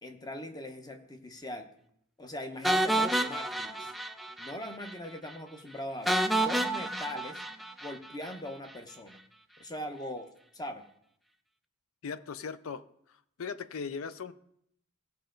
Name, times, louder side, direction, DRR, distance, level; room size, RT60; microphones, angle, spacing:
voice 1, 0.0-1.7 2.2-3.9 4.4-7.4 7.8-9.2 9.6-10.8, left 1 dB, 20° left, 6 dB, 0.8 m, -41 dB
sound 1, 2.6-4.6 4.8-4.9 5.3-5.4 6.1-8.4, right 1 dB, ahead, 0.3 m, -29 dB
voice 2, 12.0-12.8 13.4-14.3, left 5 dB, 70° left, 13 dB, 0.5 m, -38 dB
16.5 x 5.5 x 3.8 m, 0.73 s
head